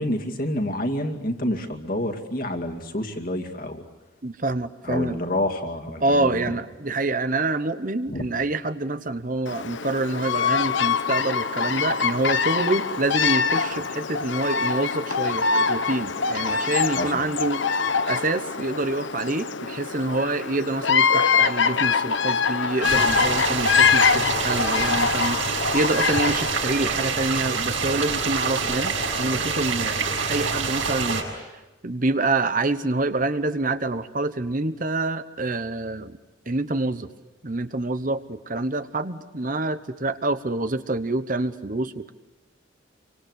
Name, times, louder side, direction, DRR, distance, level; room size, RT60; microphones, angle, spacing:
voice 1, 0.0-3.8 4.8-6.4 8.1-8.2 17.0-17.1, left 1 dB, 45° left, 4 dB, 2.4 m, -28 dB
voice 2, 4.2-5.2 6.0-30.0 30.3-31.4 31.8-36.2 36.5-37.1 37.4-42.1, right 2 dB, 40° right, 11 dB, 1.0 m, -27 dB
Bird vocalization bird call bird song, 9.5-26.7, left 5 dB, 70° left, 0.9 m, -24 dB
sound 1, 22.8-31.2, right 4 dB, 75° right, 6.5 m, -26 dB
28.0 x 25.0 x 8.1 m, 1.1 s
head